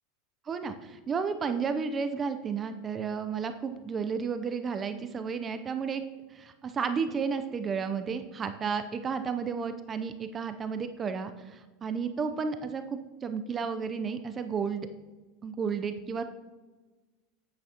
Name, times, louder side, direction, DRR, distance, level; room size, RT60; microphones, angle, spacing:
voice 1, 0.5-6.0 6.3-14.9 15.4-16.2, right 6 dB, 30° right, 9 dB, 0.6 m, -32 dB
8.6 x 8.5 x 2.9 m, 1.2 s
hypercardioid pair, 105°, 0 cm